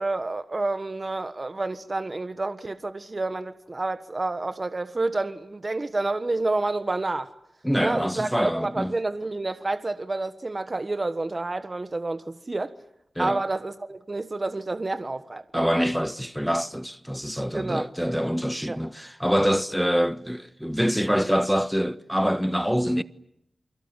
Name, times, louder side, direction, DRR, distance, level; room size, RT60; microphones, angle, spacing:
voice 1, 0.0-7.3 7.8-12.7 13.2-15.6 17.5-17.9 18.7-18.8, right 2 dB, 40° right, 1.4 m, -29 dB
voice 2, 7.6-9.0 13.1-13.4 15.5-23.0, equal, 5° right, 1.4 m, -25 dB
29.0 x 24.0 x 7.6 m
cardioid pair, 55°, 0 cm